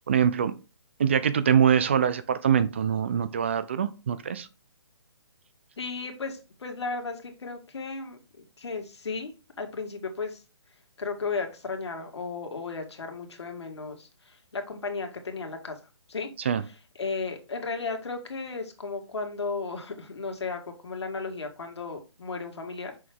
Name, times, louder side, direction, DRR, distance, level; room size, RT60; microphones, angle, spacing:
voice 1, 0.1-0.5 1.0-4.5 16.5-16.6, right 8 dB, 25° right, 0.4 m, -23 dB
voice 2, 5.8-10.4 11.0-15.8 16.1-16.3 17.0-22.9, left 4 dB, 75° left, 1.8 m, -35 dB
6.1 x 4.9 x 3.5 m
hypercardioid pair, 170°, 14 cm